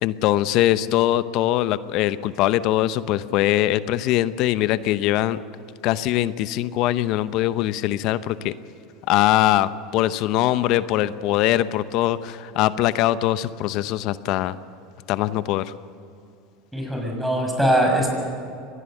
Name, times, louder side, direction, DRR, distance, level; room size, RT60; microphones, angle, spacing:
voice 1, 0.0-5.4 5.8-8.5 9.1-14.6 15.1-15.7, left 14 dB, 60° left, 15 dB, 0.8 m, -22 dB
voice 2, 16.7-18.1, right 1 dB, 5° right, 1 dB, 6.6 m, -21 dB
24.5 x 19.5 x 6.7 m, 2.5 s
hypercardioid pair, 95°, 0 cm